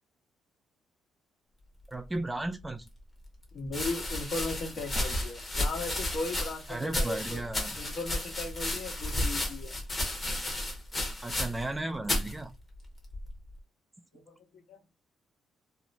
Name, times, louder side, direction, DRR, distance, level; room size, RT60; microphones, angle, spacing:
voice 1, 1.9-2.9 6.7-7.8 11.2-12.5, right 2 dB, 15° right, 0.4 m, -35 dB
sound 1, 2.6-2.7 3.6-11.8 12.0-12.3 13.1-13.5, left 1 dB, 25° left, 1.1 m, -33 dB
voice 2, 3.5-7.4 7.7-9.8 14.1-14.8, left 3 dB, 65° left, 1.3 m, -37 dB
2.9 x 2.1 x 2.5 m
cardioid pair, 90°, 0 cm